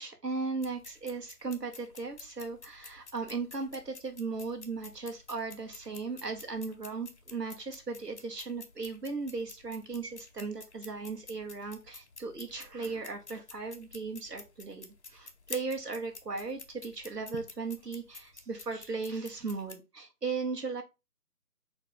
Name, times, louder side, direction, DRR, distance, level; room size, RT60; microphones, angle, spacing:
voice 1, 0.0-20.8, right 4 dB, 90° right, 4 dB, 1.1 m, -37 dB
sound 1, 0.6-19.7, left 4 dB, 45° left, 0.5 m, -51 dB
4.1 x 2.5 x 3.6 m, 0.27 s
figure-of-eight pair, 150°, 47 cm